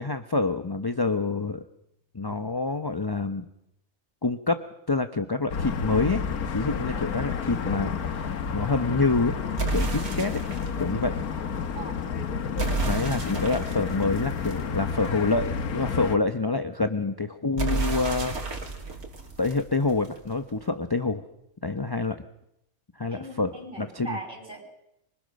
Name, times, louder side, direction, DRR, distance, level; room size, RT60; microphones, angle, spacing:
voice 1, 0.0-1.6 2.1-3.5 4.2-6.2 6.5-9.4 9.7-10.4 10.8-11.1 12.9-18.4 19.4-21.2 21.6-22.2 23.0-23.5 23.8-24.2, left 3 dB, 20° left, 9 dB, 0.7 m, -27 dB
sound 1, 5.5-16.2, left 6 dB, 85° left, 1.7 m, -30 dB
sound 2, 9.6-10.8 12.6-15.3 17.6-20.3, right 3 dB, 85° right, 3.3 m, -31 dB
voice 2, 23.1-24.6, right 3 dB, 35° right, 3 dB, 6.8 m, -39 dB
26.0 x 24.5 x 6.5 m, 0.81 s
omnidirectional pair, 1.5 m